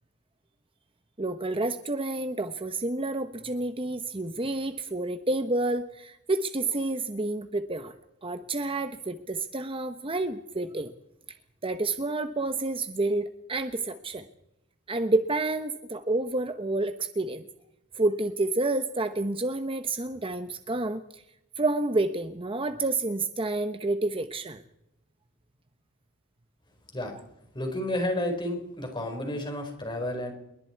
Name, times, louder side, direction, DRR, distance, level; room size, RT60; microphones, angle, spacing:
voice 1, 1.2-7.9 8.2-10.9 11.6-14.3 14.9-17.4 17.9-21.2 21.6-24.6, right 2 dB, 25° right, 9 dB, 1.0 m, -29 dB
voice 2, 27.5-30.3, left 1 dB, 20° left, 3 dB, 5.1 m, -31 dB
28.0 x 22.0 x 4.7 m, 0.83 s
head